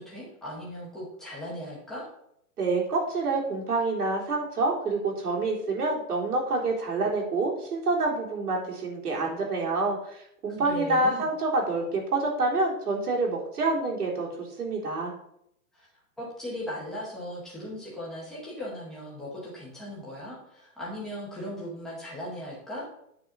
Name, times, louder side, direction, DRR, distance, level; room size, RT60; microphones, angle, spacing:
voice 1, 0.0-2.1 10.5-11.3 15.7-15.9 16.2-22.9, left 1 dB, ahead, -7 dB, 0.8 m, -38 dB
voice 2, 2.6-15.1, right 3 dB, 80° right, -2 dB, 3.7 m, -27 dB
9.2 x 4.2 x 7.0 m, 0.75 s
hypercardioid pair, 180°, 45 cm